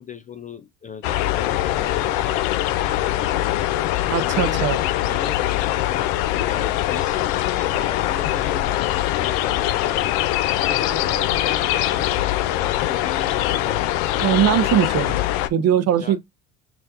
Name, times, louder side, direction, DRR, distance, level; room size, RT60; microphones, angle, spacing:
voice 1, 0.0-2.4 2.8-3.4 4.2-4.7 5.1-12.1 12.5-14.2 16.0-16.2, left 6 dB, 20° left, 0.3 m, -36 dB
sound 1, 1.0-15.5, left 14 dB, 70° left, 0.6 m, -22 dB
voice 2, 4.1-4.8 14.2-15.2 15.5-16.2, right 10 dB, 40° right, 0.6 m, -20 dB
5.7 x 2.5 x 2.5 m
hypercardioid pair, 80°, 39 cm